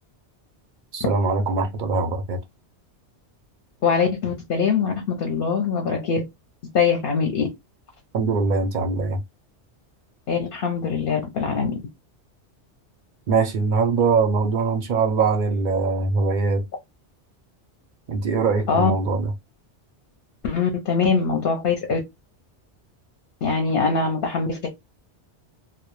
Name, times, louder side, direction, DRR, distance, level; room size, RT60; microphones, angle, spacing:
voice 1, 0.9-2.4 8.1-9.2 13.3-16.7 18.1-19.3, right 4 dB, 60° right, 0.5 m, -22 dB
voice 2, 3.8-6.2 6.7-7.5 10.3-11.8 18.7-18.9 20.4-22.0 23.4-24.7, left 5 dB, 60° left, 0.7 m, -22 dB
2.1 x 2.1 x 2.9 m
omnidirectional pair, 1.2 m